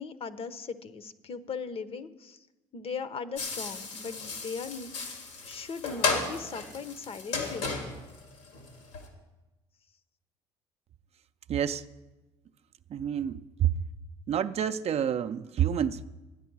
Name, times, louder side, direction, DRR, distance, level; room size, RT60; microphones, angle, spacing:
voice 1, 0.0-2.4 2.7-4.9 5.4-7.8, left 5 dB, 40° left, 13 dB, 0.8 m, -38 dB
sound 1, 3.4-9.1, left 4 dB, 85° left, 2.1 m, -34 dB
voice 2, 11.5-11.8 12.9-13.8 14.3-16.1, right 9 dB, 45° right, 10 dB, 0.5 m, -28 dB
12.5 x 9.7 x 4.7 m, 1.1 s
hypercardioid pair, 60°, 15 cm